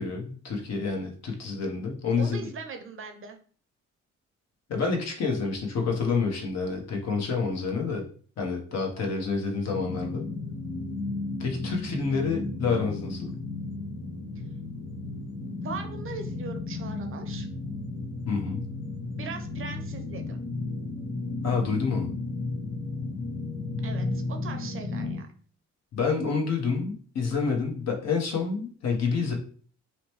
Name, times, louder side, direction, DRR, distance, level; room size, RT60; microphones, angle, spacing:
voice 1, 0.0-2.5 4.7-8.0 8.4-10.3 11.4-13.3 18.3-18.6 21.4-22.1 25.9-29.3, left 4 dB, 60° left, 1 dB, 0.9 m, -28 dB
voice 2, 2.2-3.4 9.0-9.1 12.1-12.4 15.6-17.5 19.2-20.4 23.8-25.3, right 4 dB, 45° right, 5 dB, 0.6 m, -40 dB
sound 1, 9.6-25.2, left 3 dB, 85° left, 0.9 m, -34 dB
2.8 x 2.1 x 3.0 m, 0.43 s
cardioid pair, 90°, 30 cm